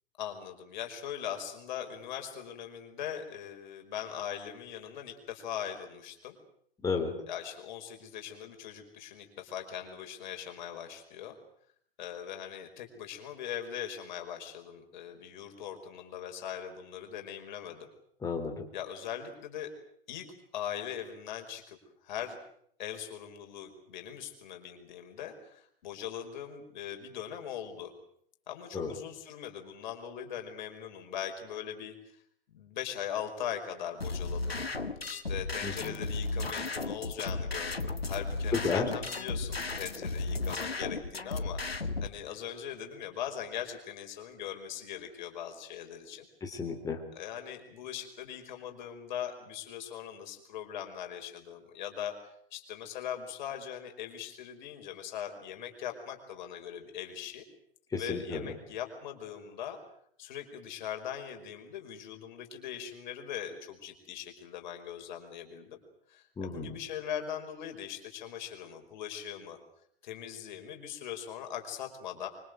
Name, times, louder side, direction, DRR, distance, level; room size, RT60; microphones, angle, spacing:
voice 1, 0.2-6.4 7.3-11.4 12.0-17.9 18.7-19.7 20.1-20.3 20.5-21.8 22.0-22.4 22.8-27.9 28.5-32.2 32.5-34.6 35.1-46.3 47.1-52.1 52.5-57.4 58.0-59.8 60.2-65.8 66.1-69.6 70.0-72.3, left 9 dB, 50° left, 5 dB, 5.3 m, -40 dB
voice 2, 18.2-18.6 28.7-28.9 35.6-36.0 38.6-38.9 46.4-47.0 57.9-58.5 66.4-66.8, left 4 dB, 10° left, 1 dB, 3.8 m, -33 dB
sound 1, 34.0-42.1, left 3 dB, 85° left, 1.7 m, -34 dB
25.5 x 25.0 x 8.0 m, 0.67 s
figure-of-eight pair, 105°, 29 cm